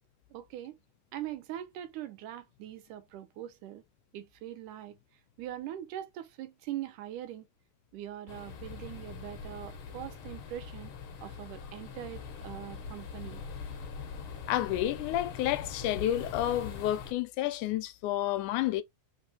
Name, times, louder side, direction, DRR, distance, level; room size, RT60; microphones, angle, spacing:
voice 1, 0.3-0.8 1.1-3.8 4.1-5.0 5.4-7.5 7.9-10.9 11.2-13.4, right 12 dB, 80° right, 2.3 m, -42 dB
sound 1, 8.3-17.1, left 5 dB, 60° left, 1.5 m, -42 dB
voice 2, 14.5-18.8, left 13 dB, 80° left, 2.0 m, -30 dB
5.2 x 3.3 x 2.8 m
omnidirectional pair, 3.6 m